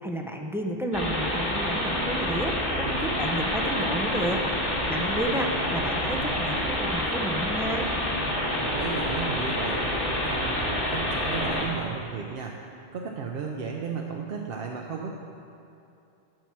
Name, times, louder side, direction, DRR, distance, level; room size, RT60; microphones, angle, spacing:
voice 1, 0.0-4.4 4.9-7.9, right 1 dB, 5° right, 2 dB, 0.4 m, -31 dB
sound 1, 0.9-11.6, left 1 dB, 25° left, 1.7 m, -28 dB
voice 2, 2.7-3.2 8.5-15.1, right 5 dB, 65° right, 0 dB, 0.8 m, -35 dB
7.6 x 5.8 x 7.3 m, 2.7 s
omnidirectional pair, 1.1 m